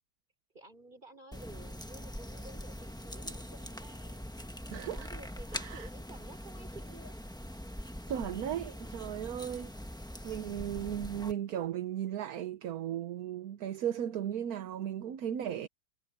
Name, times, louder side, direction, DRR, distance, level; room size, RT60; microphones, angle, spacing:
voice 1, 0.5-4.3 4.7-7.1, right 2 dB, 25° right, 4.3 m, -52 dB
sound 1, 1.3-11.3, equal, 5° left, 0.9 m, -43 dB
voice 2, 4.7-5.1 5.5-5.9 8.1-9.7 10.2-15.7, right 10 dB, 60° right, 1.2 m, -36 dB
omnidirectional pair, 1.9 m